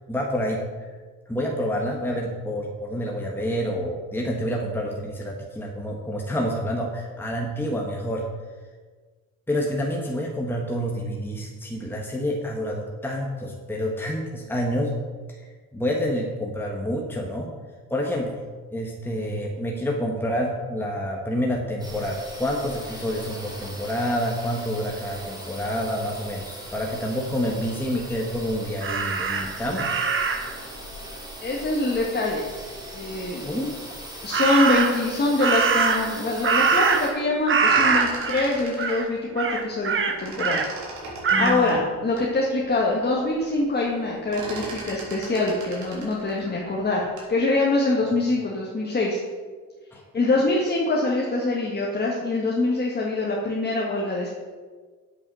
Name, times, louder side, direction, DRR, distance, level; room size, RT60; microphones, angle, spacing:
voice 1, 0.1-0.6 1.3-8.2 9.5-14.9 15.7-17.5 17.9-18.5 18.7-29.9 33.4-33.7 41.3-41.8 49.9-50.0, equal, 5° left, -1 dB, 1.4 m, -28 dB
sound 1, 21.8-37.1, right 1 dB, 15° right, 2.9 m, -39 dB
Crow, 28.8-30.6 34.3-35.1 35.4-37.2 37.5-38.5 38.8-39.0 39.4-40.7 41.2-41.6, right 5 dB, 40° right, 1.2 m, -23 dB
voice 2, 31.4-32.4 32.9-33.6 34.2-40.7 41.4-49.2 50.1-54.3, left 2 dB, 35° left, -3 dB, 1.8 m, -24 dB
sound 2, 37.4-39.9 40.2-42.3 42.8-42.9 43.2-43.6 43.9-47.4, right 2 dB, 75° right, 3.5 m, -38 dB
8.0 x 7.1 x 6.4 m, 1.5 s
cardioid pair, 90°, 30 cm